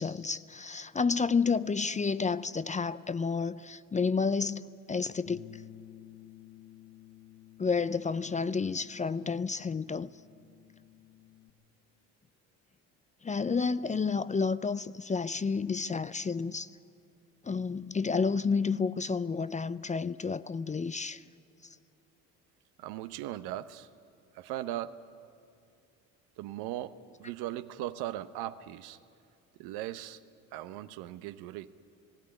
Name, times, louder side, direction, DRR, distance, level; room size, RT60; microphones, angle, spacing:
voice 1, 0.0-5.4 7.6-10.1 13.2-16.7 17.4-21.2, left 5 dB, 20° left, 0.5 m, -30 dB
Bass guitar, 5.3-11.5, left 12 dB, 60° left, 1.5 m, -53 dB
voice 2, 22.8-23.9 24.3-25.0 26.4-29.0 29.6-30.2 30.5-31.7, right 13 dB, 75° right, 0.9 m, -38 dB
17.0 x 17.0 x 9.8 m
supercardioid pair, 65°, 38 cm